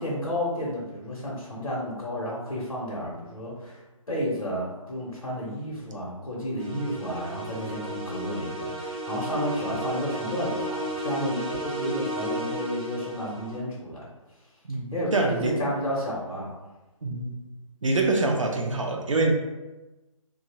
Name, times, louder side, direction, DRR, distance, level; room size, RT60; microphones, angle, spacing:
voice 1, 0.0-14.0 14.9-16.5, equal, 75° left, -6 dB, 0.9 m, -31 dB
sound 1, 6.6-13.6, right 1 dB, ahead, 0.3 m, -33 dB
voice 2, 14.6-15.5 17.0-17.4 17.8-19.3, right 2 dB, 65° right, 1 dB, 0.5 m, -25 dB
2.7 x 2.3 x 2.8 m, 1.1 s
figure-of-eight pair, 140°, 17 cm